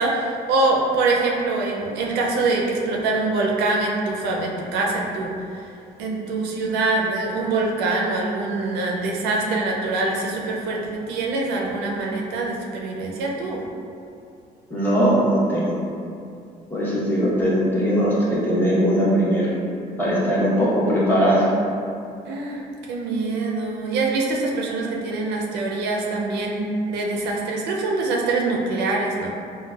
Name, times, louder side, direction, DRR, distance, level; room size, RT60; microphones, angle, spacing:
voice 1, 0.0-5.3 6.0-13.6 22.3-29.3, right 3 dB, 80° right, -1 dB, 0.5 m, -24 dB
voice 2, 14.7-15.8 16.7-19.5 20.0-21.5, equal, 10° left, -8 dB, 0.9 m, -20 dB
3.8 x 2.2 x 2.3 m, 2.5 s
cardioid pair, 110°, 17 cm